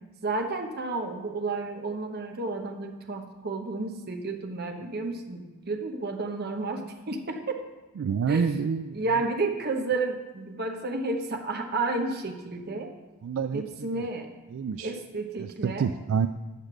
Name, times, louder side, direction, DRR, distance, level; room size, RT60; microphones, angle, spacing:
voice 1, 0.2-7.6 8.3-8.5 8.9-12.9 13.5-14.3 14.8-15.9, right 3 dB, 45° right, 4 dB, 0.9 m, -31 dB
voice 2, 8.0-9.0 13.2-14.1 14.5-14.9 15.4-16.3, right 6 dB, 65° right, 9 dB, 0.3 m, -28 dB
8.4 x 6.5 x 6.0 m, 1.2 s
head